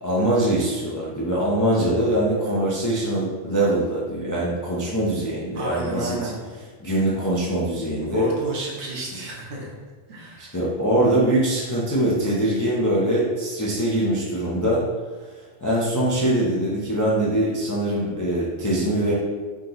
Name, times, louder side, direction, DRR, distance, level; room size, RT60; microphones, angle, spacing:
voice 1, 0.0-6.2 6.8-8.3 10.4-14.8 15.6-19.1, right 1 dB, 25° left, -6 dB, 0.4 m, -23 dB
voice 2, 5.5-6.4 8.0-9.7 10.1-10.6, right 1 dB, 70° right, -3 dB, 1.1 m, -31 dB
3.6 x 2.9 x 3.8 m, 1.4 s
omnidirectional pair, 1.2 m